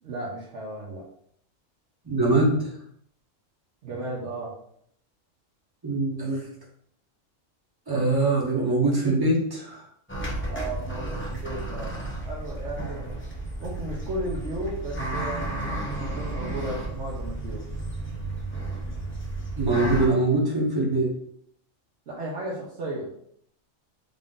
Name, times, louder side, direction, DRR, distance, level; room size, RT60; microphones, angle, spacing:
voice 1, 0.0-1.0 3.8-4.5 10.5-13.2 13.6-17.6 22.1-23.1, right 1 dB, 65° right, -5 dB, 1.0 m, -35 dB
voice 2, 2.0-2.7 5.8-6.5 7.9-9.8 19.6-21.1, right 2 dB, 20° right, -3 dB, 0.9 m, -23 dB
sound 1, 10.1-20.1, right 2 dB, 15° left, 0.5 m, -32 dB
3.5 x 2.5 x 3.7 m, 0.67 s
omnidirectional pair, 1.3 m